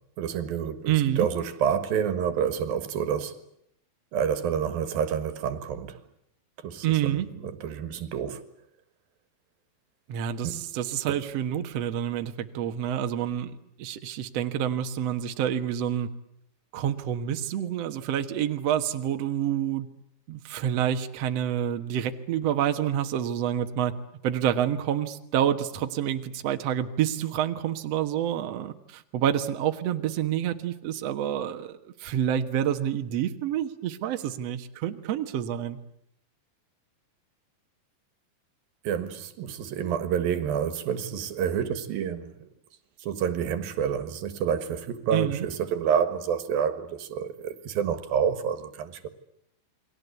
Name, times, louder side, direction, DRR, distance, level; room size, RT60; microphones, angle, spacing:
voice 1, 0.2-3.4 4.1-6.0 6.6-8.4 10.4-10.7 11.1-11.2 38.8-42.5 43.0-49.1, right 8 dB, 75° right, 3.3 m, -28 dB
voice 2, 0.9-1.3 6.8-7.3 10.1-13.5 13.8-16.1 16.7-19.9 20.3-23.9 24.2-35.8 45.1-45.5, right 10 dB, 55° right, 2.1 m, -28 dB
29.0 x 22.5 x 8.2 m
omnidirectional pair, 4.3 m